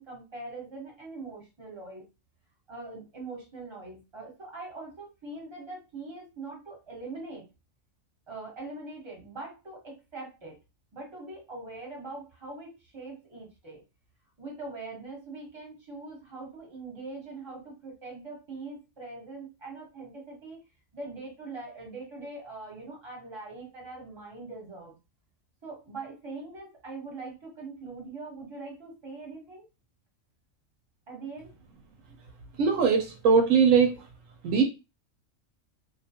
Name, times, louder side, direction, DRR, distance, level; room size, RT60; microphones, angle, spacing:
voice 1, 0.0-2.1 2.7-7.5 8.3-10.6 10.9-13.8 14.4-20.6 20.9-25.0 25.6-29.6 31.1-31.5, right 3 dB, 20° right, -1 dB, 1.0 m, -42 dB
voice 2, 32.6-34.0 34.4-34.6, right 6 dB, 75° right, 4 dB, 0.9 m, -21 dB
2.6 x 2.2 x 2.8 m, 0.28 s
omnidirectional pair, 1.4 m